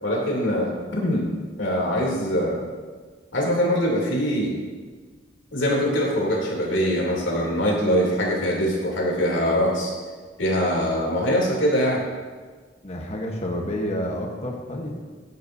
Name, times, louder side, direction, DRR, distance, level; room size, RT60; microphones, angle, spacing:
voice 1, 0.0-1.3 1.6-2.7 3.3-4.6 5.5-9.9 10.4-12.0, equal, 80° left, -3 dB, 3.1 m, -23 dB
voice 2, 12.8-15.0, equal, 35° left, 0 dB, 1.2 m, -29 dB
15.0 x 9.4 x 2.8 m, 1.5 s
head